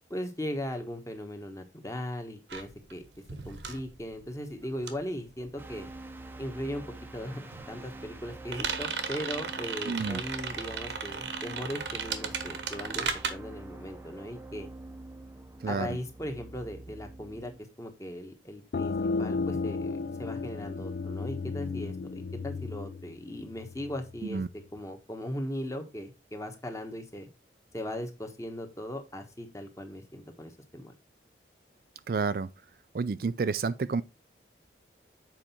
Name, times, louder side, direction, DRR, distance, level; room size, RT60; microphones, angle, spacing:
voice 1, 0.1-3.0 3.4-5.9 6.4-6.9 7.1-7.4 7.7-14.7 15.7-17.5 17.8-27.3 27.7-30.9, equal, 15° left, 1.2 m, -38 dB
sound 1, 2.5-6.3 6.6-13.3, right 6 dB, 80° right, 1.2 m, -36 dB
sound 2, 5.6-17.6, right 2 dB, 10° right, 0.7 m, -46 dB
voice 2, 9.9-10.2 15.6-15.9 24.3-24.5 32.1-32.5 32.9-34.0, right 4 dB, 55° right, 0.4 m, -29 dB
sound 3, 18.7-24.1, left 4 dB, 55° left, 0.3 m, -34 dB
7.6 x 5.0 x 4.3 m
head